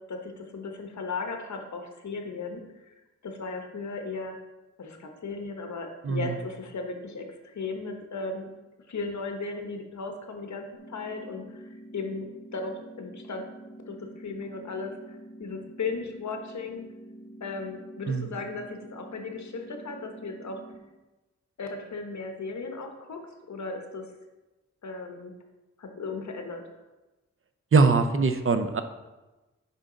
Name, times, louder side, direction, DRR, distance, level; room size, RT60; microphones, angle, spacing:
voice 1, 0.1-2.9 3.2-4.4 4.8-8.5 8.9-12.3 12.5-13.5 13.9-14.9 15.4-16.8 17.4-20.6 21.6-23.2 23.5-24.1 24.8-25.3 25.8-26.6, left 4 dB, 75° left, 4 dB, 1.1 m, -36 dB
sound 1, 10.7-20.8, right 1 dB, ahead, 2.3 m, -47 dB
voice 2, 27.7-28.8, right 4 dB, 45° right, 9 dB, 0.6 m, -22 dB
8.2 x 5.4 x 3.9 m, 1.1 s
wide cardioid pair, 105°, 29 cm